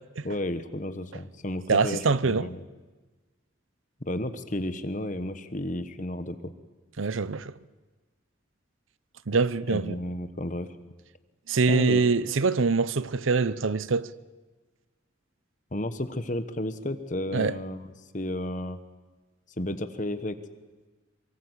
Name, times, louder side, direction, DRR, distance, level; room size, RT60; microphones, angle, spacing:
voice 1, 0.2-2.6 4.1-6.5 9.7-10.7 11.7-12.0 15.7-18.8 19.6-20.4, left 1 dB, 40° left, 1.3 m, -32 dB
voice 2, 1.7-2.5 7.0-7.5 9.3-10.0 11.5-14.1 17.3-17.6, right 4 dB, 80° right, 0.7 m, -24 dB
24.5 x 23.5 x 8.2 m
head